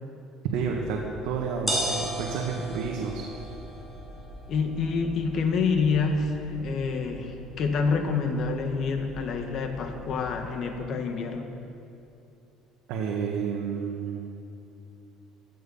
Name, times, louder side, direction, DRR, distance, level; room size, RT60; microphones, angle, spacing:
sound 1, 0.5-10.6, right 1 dB, 5° left, 4.3 m, -38 dB
voice 1, 0.5-1.0 1.2-3.2 12.9-14.2, right 6 dB, 75° right, -1 dB, 1.6 m, -30 dB
voice 2, 4.5-11.5, left 4 dB, 45° left, 5 dB, 1.6 m, -27 dB
15.5 x 13.5 x 5.6 m, 2.7 s
cardioid pair, 150°, 0 cm